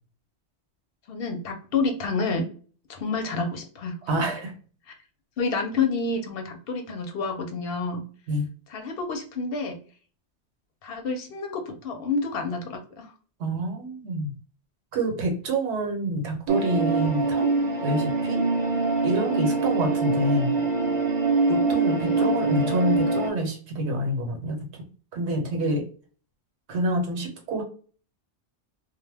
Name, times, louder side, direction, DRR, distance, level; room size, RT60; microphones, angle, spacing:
voice 1, 1.1-2.5 2.9-3.9 5.4-8.0 8.7-9.8 10.8-13.1 22.0-22.4, left 4 dB, 65° left, 4 dB, 0.7 m, -29 dB
voice 2, 4.1-4.5 8.3-8.5 13.4-14.3 14.9-17.5 17.8-18.4 19.0-20.5 21.5-25.9 26.7-27.6, right 1 dB, 80° right, 3 dB, 1.1 m, -27 dB
sound 1, 16.5-23.3, right 3 dB, 45° right, 0.8 m, -24 dB
2.2 x 2.1 x 3.2 m, 0.41 s
omnidirectional pair, 1.1 m